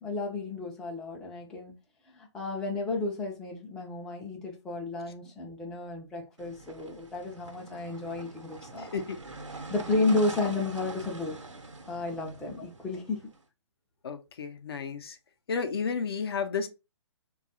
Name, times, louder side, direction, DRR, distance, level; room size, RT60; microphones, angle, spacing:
voice 1, 0.0-1.8 2.1-8.9 9.7-11.4 11.9-13.2, left 2 dB, 5° left, 0.4 m, -32 dB
sound 1, 6.4-13.4, right 3 dB, 85° right, 0.9 m, -44 dB
voice 2, 8.8-9.2 9.6-9.7 14.0-15.2 15.5-16.7, left 5 dB, 55° left, 0.5 m, -32 dB
3.8 x 2.3 x 2.7 m
figure-of-eight pair, 135°, 15 cm